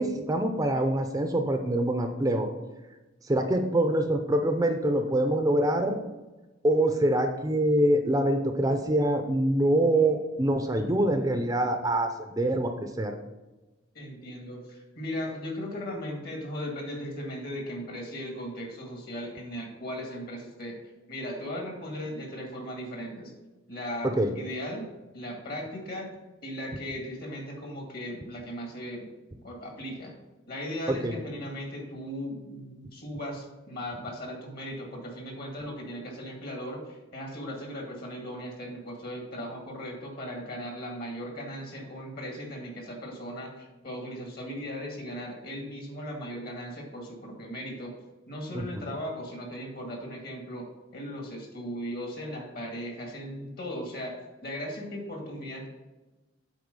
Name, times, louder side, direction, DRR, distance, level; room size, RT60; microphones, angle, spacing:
voice 1, 0.0-2.5 3.3-6.0 6.6-13.2 24.0-24.3 30.9-31.1 48.5-48.8, right 1 dB, 20° right, 6 dB, 0.5 m, -25 dB
voice 2, 13.9-20.8 21.1-23.3 23.7-24.9 25.1-26.1 26.4-29.1 29.4-30.1 30.5-47.9 48.3-50.7 50.9-54.1 54.4-55.7, equal, 55° left, 1 dB, 2.1 m, -37 dB
7.9 x 4.6 x 5.3 m, 1.1 s
head